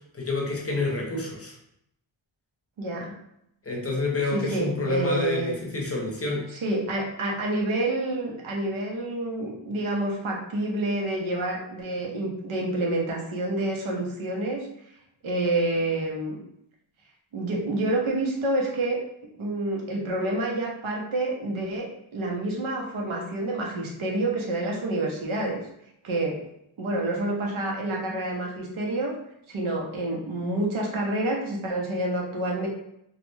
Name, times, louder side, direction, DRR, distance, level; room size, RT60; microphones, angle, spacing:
voice 1, 0.1-1.5 3.6-6.5, left 2 dB, 30° left, -1 dB, 0.6 m, -28 dB
voice 2, 2.8-3.2 4.3-5.6 6.5-14.7 15.2-16.4 17.3-19.0 19.4-21.9 22.1-25.6 26.0-26.4 26.8-29.1 29.5-32.7, right 2 dB, 85° right, -1 dB, 0.8 m, -28 dB
2.3 x 2.1 x 3.1 m, 0.76 s
wide cardioid pair, 95°, 47 cm